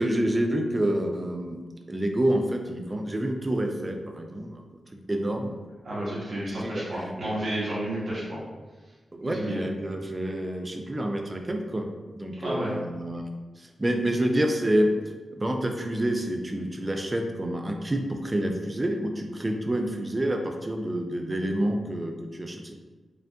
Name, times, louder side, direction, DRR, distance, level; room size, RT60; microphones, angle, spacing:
voice 1, 0.0-1.6 1.9-4.6 4.9-5.5 6.6-7.0 9.1-11.8 12.1-13.3 13.6-14.9 15.3-22.8, right 1 dB, 20° right, 4 dB, 0.4 m, -28 dB
voice 2, 5.8-8.4 9.2-9.6 12.3-12.7, right 1 dB, 60° right, -7 dB, 1.4 m, -31 dB
4.8 x 2.5 x 2.3 m, 1.3 s
wide cardioid pair, 120°, 0 cm